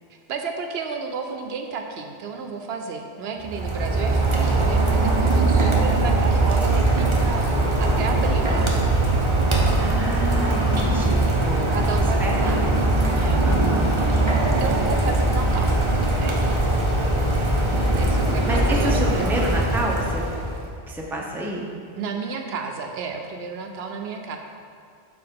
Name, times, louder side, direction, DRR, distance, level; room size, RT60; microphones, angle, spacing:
voice 1, 0.3-8.7 11.6-12.8 13.1-13.5 14.2-15.7 16.2-16.4 18.0-19.2 22.0-24.4, right 5 dB, 80° right, 4 dB, 0.8 m, -32 dB
Rain, 3.4-20.7, right 2 dB, 30° right, 0.8 m, -21 dB
voice 2, 9.8-12.7 13.4-13.9 18.4-20.3 20.9-21.7, right 1 dB, ahead, -2 dB, 0.6 m, -29 dB
6.7 x 4.1 x 5.2 m, 2.3 s
omnidirectional pair, 1.0 m